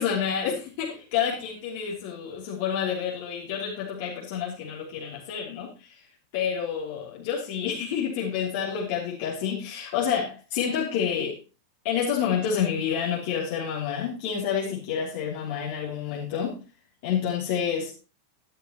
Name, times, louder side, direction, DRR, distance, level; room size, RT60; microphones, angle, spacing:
voice 1, 0.0-5.9 6.3-11.4 11.8-16.6 17.0-17.9, left 8 dB, 50° left, -4 dB, 3.3 m, -29 dB
12.5 x 11.5 x 3.1 m, 0.31 s
figure-of-eight pair, 90°, 0 cm